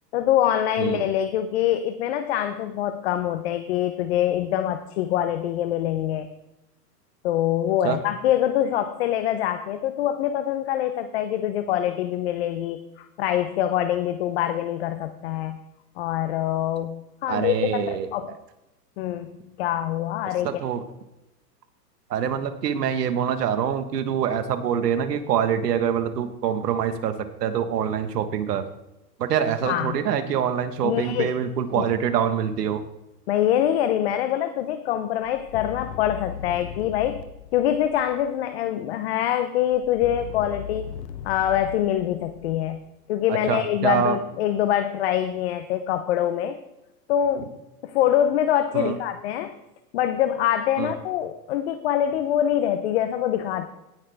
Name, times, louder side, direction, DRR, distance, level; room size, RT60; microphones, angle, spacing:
voice 1, 0.1-6.3 7.2-15.6 16.0-18.3 19.0-19.3 19.6-20.6 29.7-30.0 30.8-31.3 31.7-31.9 33.3-37.2 37.5-40.9 41.2-42.8 43.1-46.6 47.1-47.6 47.8-49.6 49.9-53.7, left 11 dB, 40° left, 9 dB, 0.7 m, -24 dB
voice 2, 17.3-18.1 20.4-20.8 22.1-27.1 27.4-28.6 29.2-32.8 43.3-44.2 48.7-49.0 50.8-50.9, right 8 dB, 70° right, 9 dB, 1.4 m, -25 dB
sound 1, 35.2-38.5 39.7-43.0, left 10 dB, 90° left, 0.9 m, -38 dB
17.5 x 6.1 x 3.5 m, 0.93 s
hypercardioid pair, 145°, 49 cm